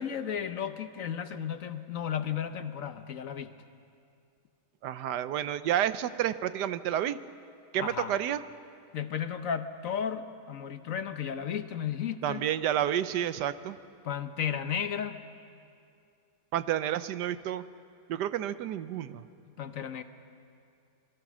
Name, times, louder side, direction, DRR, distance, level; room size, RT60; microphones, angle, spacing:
voice 1, 0.0-3.5 7.8-8.1 8.9-12.4 14.0-15.2 19.6-20.0, left 8 dB, 60° left, 10 dB, 1.1 m, -34 dB
voice 2, 4.8-7.2 7.7-8.4 12.2-13.8 16.5-17.6 18.1-19.3, right 11 dB, 80° right, 14 dB, 1.3 m, -30 dB
26.0 x 21.5 x 6.1 m, 2.5 s
omnidirectional pair, 1.8 m